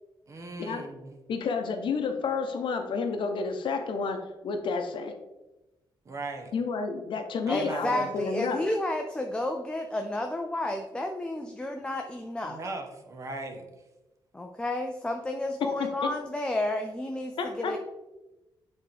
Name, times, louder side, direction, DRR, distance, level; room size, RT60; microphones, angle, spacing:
voice 1, 0.3-1.2 6.0-6.5 7.5-8.1 12.4-13.6, right 2 dB, 35° right, 4 dB, 0.9 m, -38 dB
voice 2, 1.3-5.1 6.5-8.6 15.8-16.1 17.4-17.7, left 4 dB, 65° left, 5 dB, 0.8 m, -30 dB
voice 3, 7.5-12.6 14.3-17.8, left 1 dB, 10° left, 4 dB, 0.4 m, -31 dB
8.1 x 3.6 x 3.4 m, 1.0 s
wide cardioid pair, 155°, 9 cm